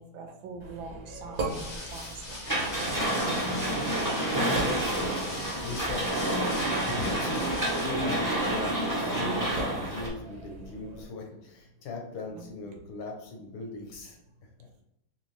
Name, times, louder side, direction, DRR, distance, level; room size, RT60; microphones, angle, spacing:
voice 1, 0.0-2.7 12.3-12.5, right 4 dB, 75° right, 4 dB, 1.3 m, -43 dB
sound 1, 0.6-11.1, right 2 dB, 50° right, 1.3 m, -41 dB
sound 2, 1.3-8.0, left 2 dB, 55° left, 0.7 m, -40 dB
sound 3, 2.5-10.1, right 1 dB, 25° right, 0.4 m, -29 dB
voice 2, 4.3-14.2 14.6-14.7, left 3 dB, 80° left, 2 dB, 1.7 m, -39 dB
3.7 x 3.1 x 3.1 m, 0.83 s
omnidirectional pair, 2.3 m